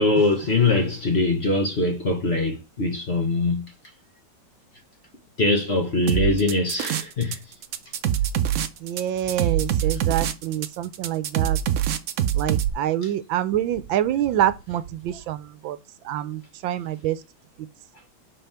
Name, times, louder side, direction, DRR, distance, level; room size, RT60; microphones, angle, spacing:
voice 1, 0.0-3.7 5.4-7.4, left 2 dB, 40° left, 1.3 m, -22 dB
sound 1, 6.1-7.4 7.6-12.7, right 11 dB, 65° right, 0.9 m, -24 dB
voice 2, 8.8-11.6 12.3-15.8 16.0-17.2 17.6-17.7, right 12 dB, 80° right, 1.4 m, -26 dB
5.4 x 4.5 x 5.6 m
omnidirectional pair, 2.1 m